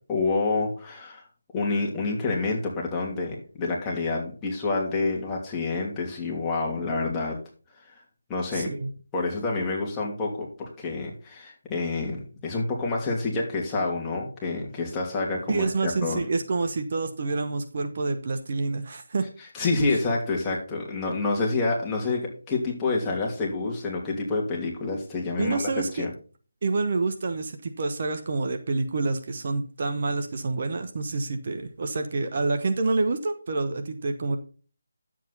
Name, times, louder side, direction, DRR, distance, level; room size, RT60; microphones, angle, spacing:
voice 1, 0.1-1.2 1.5-7.4 7.9-8.0 8.3-8.7 9.1-16.2 19.5-26.1, left 3 dB, 15° left, -2 dB, 2.6 m, -28 dB
voice 2, 8.5-8.9 15.5-19.3 25.4-26.1 26.6-34.4, right 3 dB, 45° right, 6 dB, 1.2 m, -27 dB
11.0 x 7.7 x 4.1 m, 0.38 s
figure-of-eight pair, 160°, 0 cm